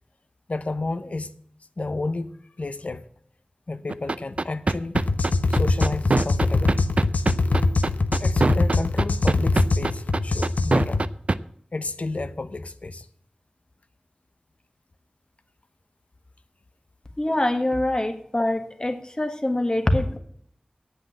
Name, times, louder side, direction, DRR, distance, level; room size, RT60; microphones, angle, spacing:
voice 1, 0.5-1.3 1.8-3.0 3.7-5.0 5.5-6.9 8.2-11.1 11.7-13.1, left 2 dB, 60° left, 12 dB, 0.9 m, -31 dB
sound 1, 3.9-11.4, right 3 dB, 55° right, 0.5 m, -22 dB
sound 2, 4.9-11.0, left 3 dB, 85° left, 0.9 m, -22 dB
voice 2, 17.2-20.2, left 1 dB, 30° left, 7 dB, 1.6 m, -24 dB
9.4 x 8.3 x 8.7 m, 0.65 s
wide cardioid pair, 70°, 3 cm